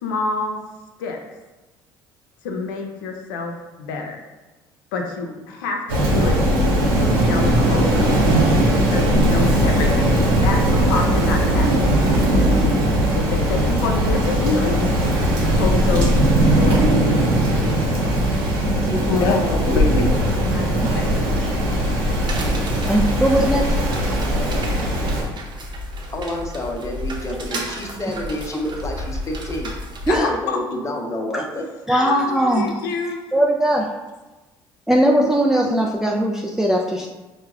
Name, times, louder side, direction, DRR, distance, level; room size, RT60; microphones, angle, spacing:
voice 1, 0.0-0.6 1.0-1.2 2.4-4.2 4.9-8.2 8.9-12.1 13.1-14.9 15.4-16.8 17.2-17.5 19.1-20.1 20.5-20.8 23.1-23.5 30.1-30.6 32.0-33.2, left 3 dB, 85° left, 3 dB, 0.4 m, -27 dB
Rain, 5.9-25.2, right 1 dB, 90° right, 0.8 m, -19 dB
voice 2, 18.9-19.8 26.1-29.7 30.3-31.6, left 1 dB, 25° left, 1 dB, 0.7 m, -28 dB
sound 1, 22.2-30.2, equal, 40° right, 0.8 m, -32 dB
voice 3, 22.9-23.6 28.5-28.6 30.1-30.3 31.3-31.4 31.9-32.7 33.3-33.9 34.9-37.1, right 1 dB, 5° right, -1 dB, 0.4 m, -19 dB
4.5 x 2.1 x 2.4 m, 1.1 s
hypercardioid pair, 65°, 11 cm